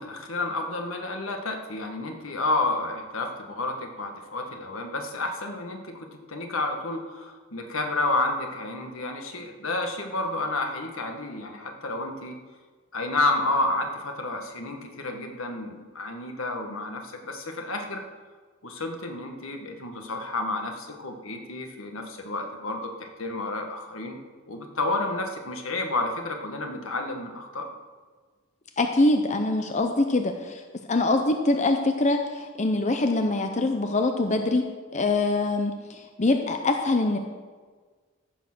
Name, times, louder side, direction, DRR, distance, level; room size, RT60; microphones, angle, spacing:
voice 1, 0.0-12.3 12.9-18.0 18.6-24.2 24.5-27.7, left 2 dB, 80° left, 4 dB, 1.6 m, -30 dB
voice 2, 28.8-30.6 30.9-34.7 34.9-37.2, left 2 dB, 35° left, 5 dB, 0.7 m, -24 dB
14.5 x 7.2 x 6.1 m, 1.5 s
head